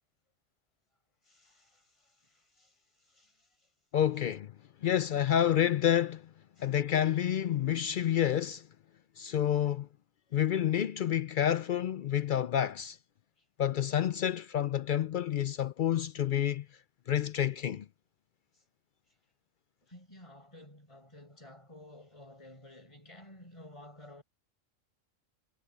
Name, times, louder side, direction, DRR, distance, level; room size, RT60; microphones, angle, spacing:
voice 1, 1.2-3.7 6.6-6.7 13.4-13.5 18.5-18.6 19.1-19.2 19.8-24.2, left 1 dB, 20° left, 6.5 m, -54 dB
voice 2, 3.9-4.5 4.8-6.3 6.6-8.7 9.2-9.9 10.3-13.0 13.6-16.7 17.1-17.9, left 10 dB, 70° left, 0.4 m, -29 dB
omnidirectional pair, 1.4 m